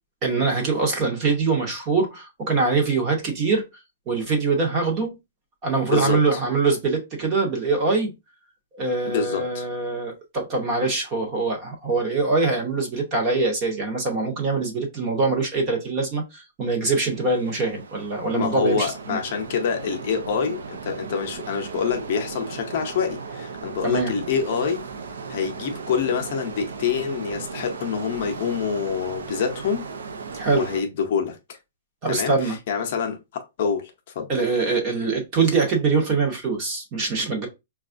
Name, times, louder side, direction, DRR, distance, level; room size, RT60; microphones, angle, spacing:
voice 1, 0.2-3.6 4.1-5.2 5.6-8.1 8.7-19.2 23.8-24.1 30.3-30.7 32.0-32.6 34.3-37.5, right 4 dB, 20° right, 0.8 m, -23 dB
voice 2, 5.9-6.4 9.1-9.6 18.3-24.8 25.3-29.9 30.5-31.4 32.1-34.3, left 6 dB, 40° left, 0.6 m, -26 dB
sound 1, 16.9-30.8, right 5 dB, 90° right, 0.6 m, -37 dB
5.2 x 2.3 x 2.5 m
hypercardioid pair, 180°, 0 cm